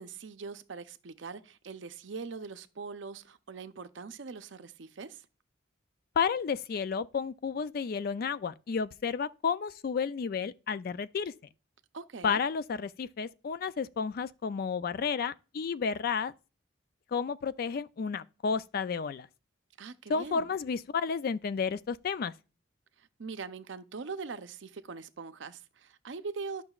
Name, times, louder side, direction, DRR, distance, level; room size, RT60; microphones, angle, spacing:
voice 1, 0.0-5.3 11.9-12.4 19.8-20.5 23.0-26.6, right 4 dB, 70° right, 0.6 m, -42 dB
voice 2, 6.2-11.3 12.2-16.3 17.1-19.3 20.1-22.3, left 6 dB, 50° left, 0.3 m, -32 dB
11.5 x 5.9 x 2.4 m
head